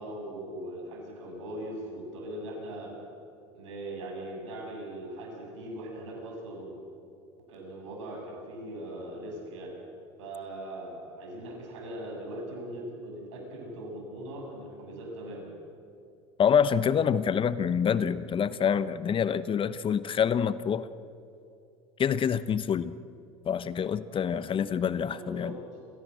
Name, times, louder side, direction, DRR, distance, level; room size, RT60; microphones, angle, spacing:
voice 1, 0.0-2.9 3.5-6.7 7.5-9.7 10.2-15.5 25.1-25.6, right 1 dB, 80° right, 1 dB, 7.3 m, -40 dB
voice 2, 16.4-20.9 22.0-22.9 23.4-25.5, left 7 dB, 35° left, 15 dB, 1.0 m, -26 dB
27.5 x 17.0 x 7.6 m, 2.6 s
hypercardioid pair, 85°, 15 cm